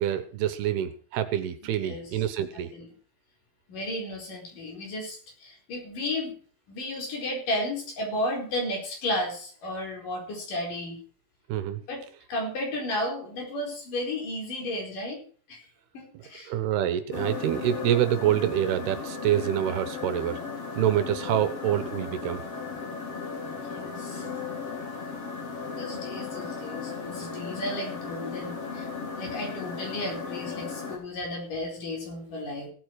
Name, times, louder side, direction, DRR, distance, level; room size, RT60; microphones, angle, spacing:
voice 1, 0.0-2.7 11.5-11.8 16.5-20.4 20.8-22.4, right 11 dB, 75° right, 11 dB, 3.0 m, -26 dB
voice 2, 1.6-2.2 2.7-2.9 3.7-6.4 6.7-11.0 11.9-15.2 15.5-15.6 15.9-16.5 23.5-24.3 25.8-28.9 29.2-32.7, left 1 dB, 55° left, 0 dB, 5.9 m, -33 dB
sound 1, 17.1-31.0, left 5 dB, 35° left, 4.2 m, -36 dB
17.0 x 8.7 x 4.7 m, 0.42 s
omnidirectional pair, 4.7 m